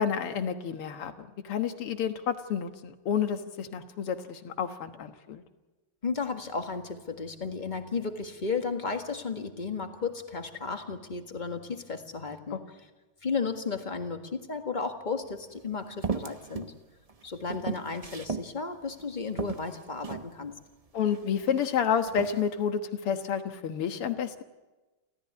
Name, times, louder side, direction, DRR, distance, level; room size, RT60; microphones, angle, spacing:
voice 1, 0.0-5.4 12.5-12.6 20.9-24.4, left 7 dB, 90° left, 8 dB, 2.3 m, -30 dB
voice 2, 6.0-12.6 13.2-16.7 17.2-20.6, left 4 dB, 25° left, 6 dB, 1.6 m, -34 dB
sound 1, 15.2-15.3 16.0-16.7 17.1-18.5 19.0-19.1 19.4-20.3 21.0-21.7 22.1-22.4, right 5 dB, 60° right, 0.3 m, -35 dB
29.0 x 14.0 x 9.6 m, 1.2 s
omnidirectional pair, 2.4 m